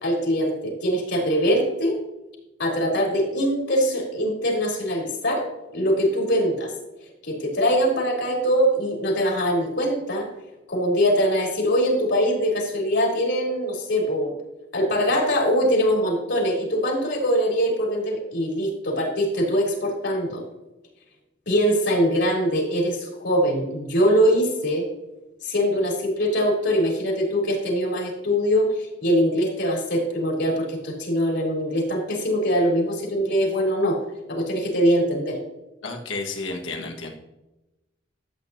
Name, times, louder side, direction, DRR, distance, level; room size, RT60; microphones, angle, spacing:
voice 1, 0.0-2.0 2.6-6.7 7.2-10.3 10.7-14.3 14.7-20.4 21.5-24.9 25.4-34.0 34.3-35.4, equal, 65° left, -1 dB, 3.4 m, -22 dB
voice 2, 35.8-37.1, left 3 dB, 85° left, 2 dB, 1.5 m, -31 dB
13.0 x 8.5 x 2.7 m, 0.99 s
head